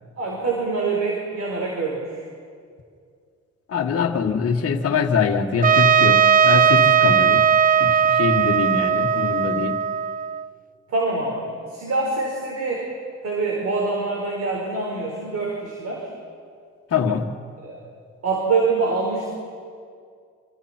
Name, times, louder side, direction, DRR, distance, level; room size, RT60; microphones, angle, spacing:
voice 1, 0.2-2.2 10.9-12.9 13.2-16.1 17.6-17.8 18.2-19.3, right 3 dB, 55° right, -2 dB, 4.9 m, -25 dB
voice 2, 3.7-7.4 7.8-9.8 16.9-17.4, left 5 dB, 50° left, 2 dB, 1.8 m, -23 dB
Trumpet, 5.6-10.5, right 7 dB, 30° right, 0.5 m, -18 dB
28.5 x 26.0 x 4.5 m, 2.2 s
cardioid pair, 90°, 30 cm